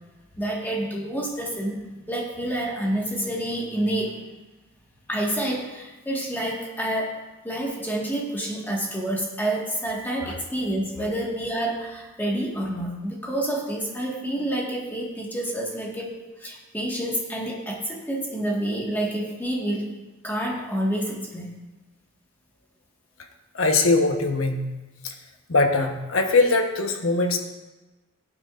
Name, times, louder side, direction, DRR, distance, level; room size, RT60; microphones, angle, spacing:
voice 1, 0.4-1.8 2.1-4.2 5.1-7.2 7.4-19.9 20.2-21.5, right 1 dB, 10° left, -2 dB, 1.6 m, -28 dB
voice 2, 23.5-24.7 25.0-25.1 25.5-27.4, left 3 dB, 75° left, 5 dB, 1.1 m, -21 dB
16.5 x 8.9 x 2.5 m, 1.1 s
head